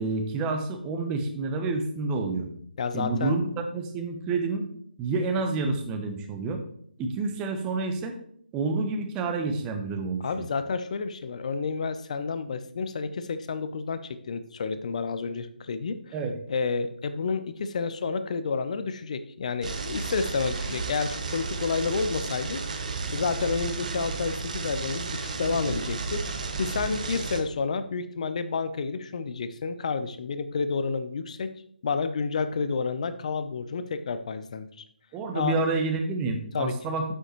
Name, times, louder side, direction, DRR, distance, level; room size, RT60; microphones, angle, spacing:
voice 1, 0.0-2.5 2.9-4.6 5.0-6.6 7.0-8.1 8.5-10.5 16.1-16.4 35.1-37.1, right 3 dB, 15° right, 5 dB, 0.8 m, -29 dB
voice 2, 2.8-3.4 10.2-16.1 16.5-22.6 23.1-26.2 26.6-31.5 31.8-34.7 35.3-35.6 36.5-36.7, left 4 dB, 45° left, 11 dB, 0.6 m, -30 dB
sound 1, 19.6-27.4, right 4 dB, 50° right, 1.0 m, -33 dB
7.9 x 7.8 x 3.1 m, 0.65 s
figure-of-eight pair, 150°, 5 cm